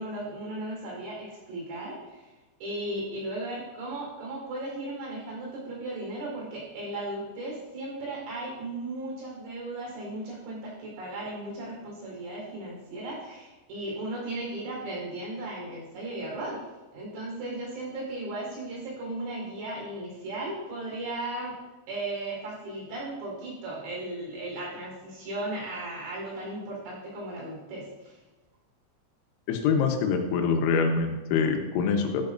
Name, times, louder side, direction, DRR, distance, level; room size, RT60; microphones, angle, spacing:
voice 1, 0.0-2.3 2.6-16.6 16.9-21.5 21.9-28.1, right 1 dB, 75° right, -4 dB, 6.6 m, -36 dB
voice 2, 29.5-32.3, left 5 dB, 85° left, 4 dB, 3.8 m, -25 dB
12.5 x 10.5 x 2.6 m, 1.1 s
omnidirectional pair, 5.9 m